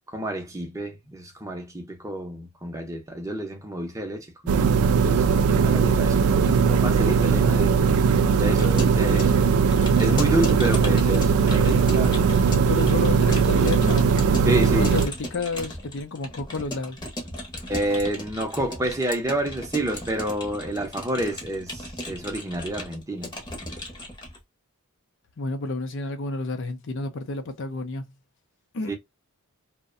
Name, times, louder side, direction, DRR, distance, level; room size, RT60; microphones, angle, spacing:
voice 1, 0.1-4.7 5.0-7.8 8.4-9.4 10.0-12.4 14.5-15.0 17.7-23.3 28.9-29.0, right 1 dB, 15° right, 0.6 m, -29 dB
sound 1, 4.5-15.1, right 6 dB, 75° right, 0.3 m, -19 dB
Keyboard (musical) / Computer keyboard, 8.3-24.4, left 1 dB, 20° left, 0.8 m, -36 dB
voice 2, 12.7-17.0 25.4-28.1 28.7-29.0, left 3 dB, 55° left, 0.5 m, -31 dB
2.5 x 2.1 x 2.4 m
head